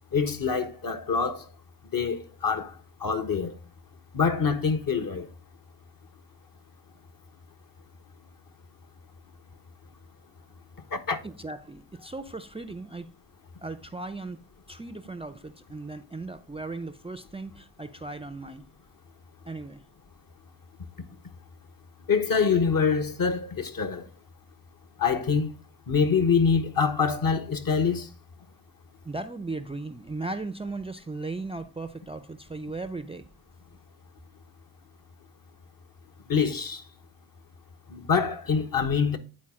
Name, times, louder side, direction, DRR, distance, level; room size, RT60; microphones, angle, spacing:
voice 1, 0.1-1.5 1.9-2.7 3.0-3.5 4.1-5.3 10.9-11.2 22.1-24.0 25.0-25.5 25.9-28.1 36.3-36.8 37.9-39.2, left 5 dB, 50° left, 1.2 m, -25 dB
voice 2, 11.2-13.1 13.6-14.4 14.7-18.7 19.5-19.8 29.0-33.3, right 3 dB, 15° right, 0.5 m, -37 dB
10.0 x 4.1 x 3.6 m
supercardioid pair, 40°, 45 cm